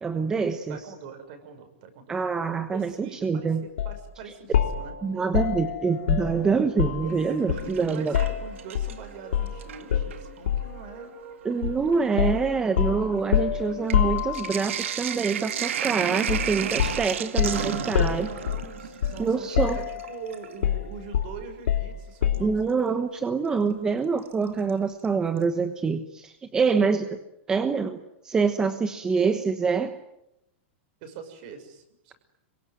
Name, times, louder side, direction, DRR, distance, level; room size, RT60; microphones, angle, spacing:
voice 1, 0.0-0.8 2.1-3.6 5.0-8.1 11.4-18.3 19.2-19.8 22.4-27.1 27.5-28.0 28.2-30.0, right 5 dB, 10° right, 8 dB, 1.1 m, -25 dB
voice 2, 0.7-2.2 2.7-4.9 6.9-7.1 7.5-11.1 16.6-16.9 17.8-22.6 26.6-27.1 31.0-32.1, right 5 dB, 45° right, 7 dB, 6.2 m, -43 dB
sound 1, 3.8-4.0 4.5-7.1 7.5-9.0 9.3-9.6 9.9-10.8 11.6-11.8 12.2-14.7 16.3-16.5 16.8-19.3 19.6-20.2 20.6-22.6, left 9 dB, 90° left, 3.0 m, -27 dB
sound 2, 5.5-13.7, right 6 dB, 25° right, 3.2 m, -49 dB
Sink (filling or washing), 7.1-9.1 9.5-10.3 11.1-11.2 11.5-20.6 22.3-22.4 24.3-24.7 25.0-25.1 25.4-25.5, right 9 dB, 90° right, 2.0 m, -33 dB
27.0 x 23.5 x 9.4 m, 0.85 s
supercardioid pair, 165°, 7 cm